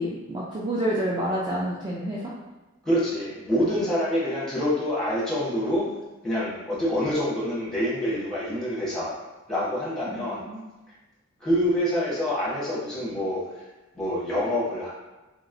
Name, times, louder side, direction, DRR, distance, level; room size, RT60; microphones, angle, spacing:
voice 1, 0.0-2.3 10.2-10.6, equal, 20° right, -7 dB, 0.3 m, -28 dB
voice 2, 2.8-5.9 6.2-9.1 9.5-10.4 11.4-13.6 13.9-14.9, equal, 5° left, -9 dB, 0.9 m, -26 dB
3.1 x 2.9 x 2.5 m, 1.1 s
head